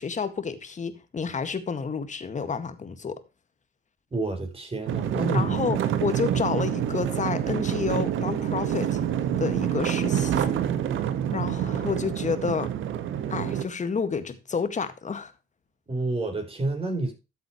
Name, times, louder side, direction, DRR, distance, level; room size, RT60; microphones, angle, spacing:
voice 1, 0.0-3.2 5.3-9.0 9.4-10.5 11.3-12.7 13.3-15.3, left 5 dB, 40° left, 1.9 m, -30 dB
voice 2, 4.1-5.8 15.9-17.1, right 2 dB, 30° right, 5.9 m, -29 dB
sound 1, 4.9-13.7, right 10 dB, 80° right, 1.6 m, -27 dB
13.5 x 7.9 x 3.1 m
cardioid pair, 90°, 20 cm